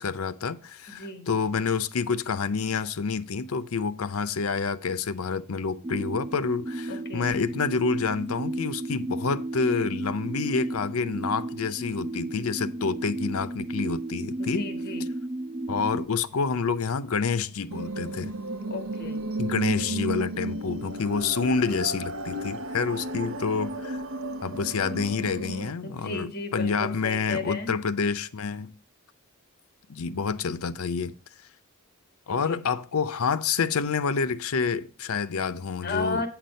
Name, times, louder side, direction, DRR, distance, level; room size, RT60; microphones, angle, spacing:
voice 1, 0.0-14.7 15.7-18.3 19.4-24.0 24.4-28.7 29.9-31.1 32.3-36.3, left 5 dB, 80° left, 0.6 m, -28 dB
voice 2, 0.9-1.2 6.9-7.3 14.4-15.1 18.7-19.2 25.8-27.7 32.4-32.6 35.8-36.3, left 3 dB, 45° left, 1.5 m, -34 dB
sound 1, 5.8-16.1, right 1 dB, 20° right, 0.3 m, -33 dB
sound 2, 17.7-25.7, right 1 dB, 65° right, 0.8 m, -33 dB
8.8 x 6.0 x 5.3 m
head